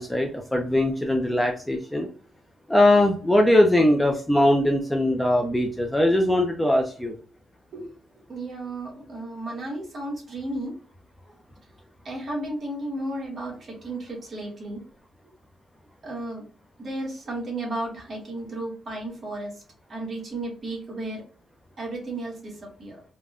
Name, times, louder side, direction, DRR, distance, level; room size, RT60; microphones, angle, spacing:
voice 1, 0.0-2.1 2.7-7.1, left 1 dB, 5° left, 2 dB, 0.4 m, -21 dB
voice 2, 8.3-10.7 12.0-14.8 16.0-16.4 16.8-19.5 19.9-21.2 21.8-23.0, right 1 dB, 40° right, -2 dB, 1.3 m, -33 dB
3.4 x 2.1 x 2.4 m, 0.40 s
wide cardioid pair, 145°, 0 cm